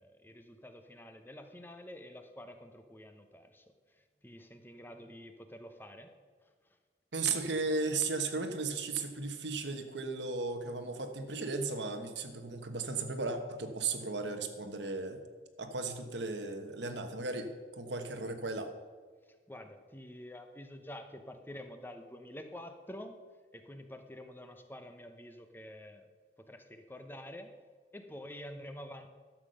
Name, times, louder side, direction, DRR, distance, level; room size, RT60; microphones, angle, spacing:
voice 1, 0.0-6.1 19.5-23.2 23.5-26.1 26.4-27.5 27.9-29.1, left 1 dB, 10° left, 7 dB, 0.8 m, -48 dB
voice 2, 7.1-15.2 15.6-17.5 17.8-18.7, right 3 dB, 85° right, 6 dB, 1.3 m, -35 dB
12.0 x 7.4 x 6.4 m, 1.5 s
head